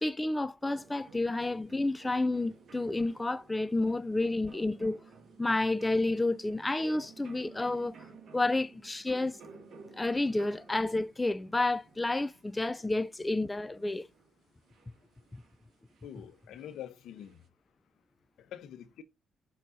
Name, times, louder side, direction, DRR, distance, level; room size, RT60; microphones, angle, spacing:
voice 1, 0.0-5.0 5.4-7.9 8.3-9.4 9.9-14.1, left 2 dB, 15° left, 0.4 m, -30 dB
sound 1, 0.6-17.5, right 4 dB, 60° right, 1.9 m, -55 dB
voice 2, 16.0-17.4 18.5-19.0, left 10 dB, 80° left, 1.1 m, -45 dB
6.1 x 4.2 x 3.9 m
cardioid pair, 90°, 0 cm